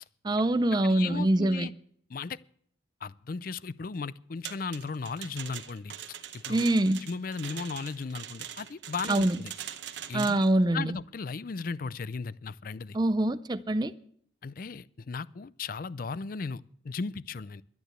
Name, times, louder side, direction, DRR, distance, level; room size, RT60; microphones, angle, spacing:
voice 1, 0.2-1.7 6.5-7.0 9.1-9.4 10.1-11.0 12.9-13.9, right 1 dB, 20° right, 0.4 m, -24 dB
voice 2, 0.9-1.7 2.1-2.4 3.0-5.9 6.3-6.7 7.0-9.5 10.1-13.0 14.4-17.6, left 4 dB, 45° left, 0.4 m, -36 dB
sound 1, 4.4-10.5, right 10 dB, 65° right, 0.9 m, -42 dB
12.0 x 9.4 x 8.0 m
head